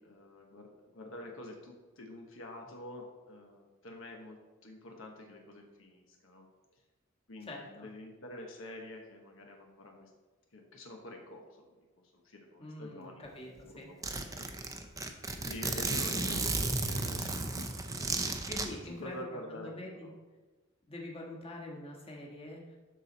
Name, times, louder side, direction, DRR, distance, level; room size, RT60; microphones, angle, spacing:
voice 1, 0.0-6.5 7.3-10.1 10.5-11.8 12.1-13.2 13.6-14.0 14.3-14.4 15.4-17.7 18.2-20.1, left 1 dB, 70° left, 1 dB, 1.1 m, -47 dB
voice 2, 7.4-7.9 12.6-14.3 18.4-19.2 19.5-20.1 20.9-22.8, left 1 dB, 30° left, -2 dB, 1.4 m, -45 dB
Zipper (clothing), 13.2-13.3 13.6-13.7 14.0-18.7, right 3 dB, 15° right, 0.6 m, -34 dB
12.5 x 4.3 x 4.0 m, 1.2 s
head